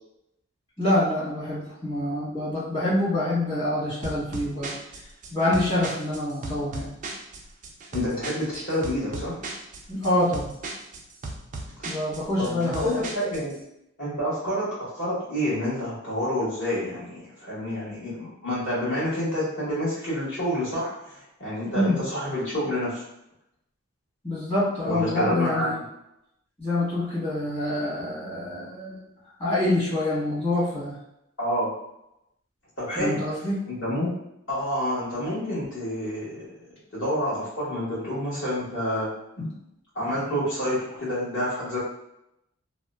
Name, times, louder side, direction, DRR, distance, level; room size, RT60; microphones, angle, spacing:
voice 1, 0.8-4.8 5.3-6.9 9.9-10.5 11.8-13.0 21.7-22.0 24.2-25.7 26.6-29.0 29.4-31.0 32.9-33.6, left 1 dB, 30° left, -10 dB, 1.4 m, -26 dB
sound 1, 4.0-13.6, right 3 dB, 35° right, 0.3 m, -37 dB
voice 2, 7.9-9.4 11.8-11.9 12.4-13.5 14.0-23.1 24.8-25.8 31.4-31.7 32.8-33.2 33.7-34.1 34.5-36.6 36.9-39.1 39.4-39.5 39.9-41.8, equal, 55° left, -9 dB, 1.4 m, -28 dB
2.8 x 2.0 x 2.3 m, 0.82 s
head